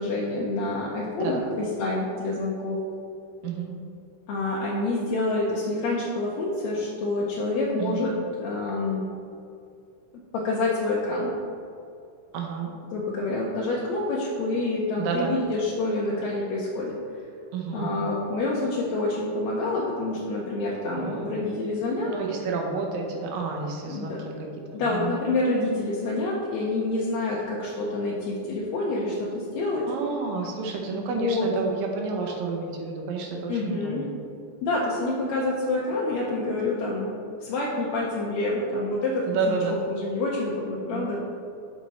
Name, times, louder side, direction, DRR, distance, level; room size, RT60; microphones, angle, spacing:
voice 1, 0.0-2.8 4.3-8.1 8.4-9.0 10.3-11.3 12.9-16.9 17.7-22.1 23.8-24.2 24.7-29.9 30.9-31.5 33.5-34.1 34.6-37.1 37.4-41.2, left 2 dB, 75° left, -5 dB, 1.7 m, -27 dB
voice 2, 12.3-12.7 15.0-15.4 17.5-17.9 21.0-21.3 22.0-25.2 29.9-34.1 39.3-39.8 40.9-41.1, right 4 dB, 85° right, 1 dB, 2.6 m, -30 dB
6.2 x 6.1 x 4.0 m, 2.5 s
omnidirectional pair, 3.9 m